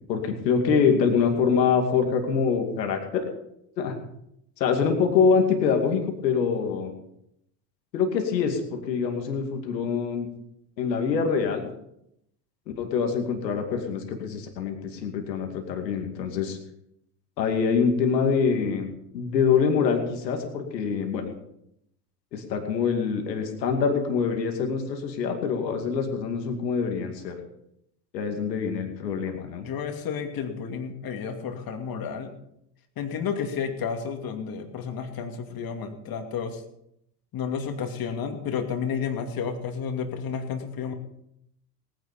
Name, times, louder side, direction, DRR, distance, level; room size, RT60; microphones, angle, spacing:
voice 1, 0.1-3.2 3.8-4.0 4.6-6.9 7.9-10.3 10.8-11.7 12.8-16.6 17.4-18.9 19.1-21.3 22.3-27.4 28.1-29.7 36.1-36.2, left 6 dB, 85° left, 4 dB, 2.5 m, -25 dB
voice 2, 29.6-32.3 33.0-36.6 37.3-40.9, left 6 dB, 45° left, 5 dB, 2.7 m, -31 dB
18.0 x 10.5 x 5.3 m, 0.77 s
hypercardioid pair, 80°, 49 cm